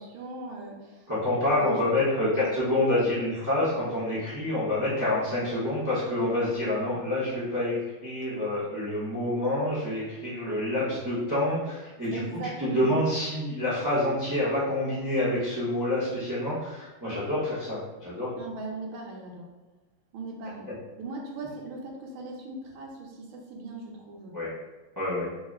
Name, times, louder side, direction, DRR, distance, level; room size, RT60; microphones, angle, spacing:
voice 1, 0.0-1.1 1.6-2.5 2.9-3.1 12.1-12.9 18.4-19.5 20.1-20.7 21.0-24.3, right 3 dB, 80° right, -1 dB, 1.5 m, -39 dB
voice 2, 1.1-12.2 12.6-18.3 24.3-24.5 25.0-25.3, left 1 dB, 30° right, -10 dB, 0.3 m, -27 dB
3.9 x 2.1 x 3.6 m, 1.1 s
omnidirectional pair, 2.2 m